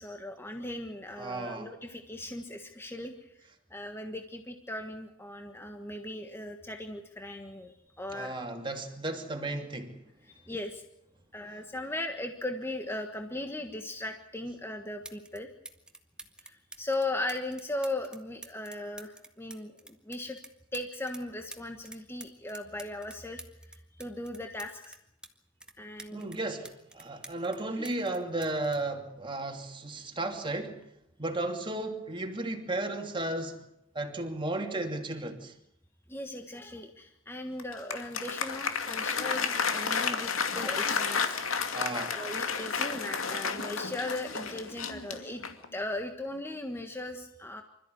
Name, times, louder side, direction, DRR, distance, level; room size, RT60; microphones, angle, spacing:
voice 1, 0.0-3.3 3.7-8.4 10.2-10.8 11.3-15.5 16.4-20.4 20.7-23.4 24.0-25.0 25.8-26.3 27.8-27.9 36.1-41.4 42.1-45.4 45.7-47.6, left 1 dB, 10° left, 4 dB, 1.5 m, -38 dB
voice 2, 1.1-1.7 8.1-10.0 11.5-11.6 26.1-30.8 31.2-33.7 33.9-35.5 41.7-42.2, right 2 dB, 25° right, 4 dB, 2.8 m, -34 dB
sound 1, 14.6-14.7 15.0-15.4 15.7-21.2 21.5-25.3 25.6-27.6 27.8-29.7 30.6-30.8, right 2 dB, 5° right, 1.8 m, -48 dB
Applause, 37.6-45.7, left 5 dB, 90° left, 2.4 m, -32 dB
26.0 x 14.0 x 9.4 m, 0.82 s
head